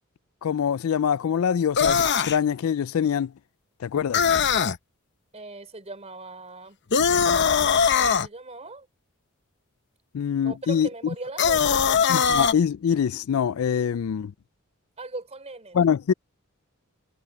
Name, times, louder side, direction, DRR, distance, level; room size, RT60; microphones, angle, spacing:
voice 1, 0.4-3.3 3.8-4.2 10.1-10.9 12.1-14.3 15.7-16.1, left 7 dB, 70° left, 0.4 m, -24 dB
sound 1, 1.8-2.4 4.1-4.8 6.9-8.3 11.4-12.5, left 6 dB, 55° left, 0.8 m, -21 dB
voice 2, 5.3-6.8 7.9-8.9 10.4-11.9 15.0-15.8, right 2 dB, 30° right, 3.4 m, -39 dB
head